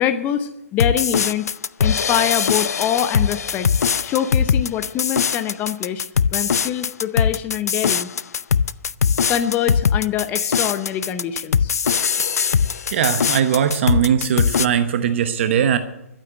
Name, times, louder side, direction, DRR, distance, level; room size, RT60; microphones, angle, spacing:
voice 1, 0.0-1.5 1.8-3.7 4.0-6.0 6.3-8.1 9.3-11.7, left 10 dB, 20° left, 10 dB, 0.7 m, -24 dB
sound 1, 0.8-14.7, left 6 dB, 85° left, 0.5 m, -21 dB
voice 2, 12.9-15.8, right 8 dB, 50° right, 9 dB, 1.1 m, -19 dB
12.0 x 8.8 x 9.0 m, 0.87 s
hypercardioid pair, 145°, 8 cm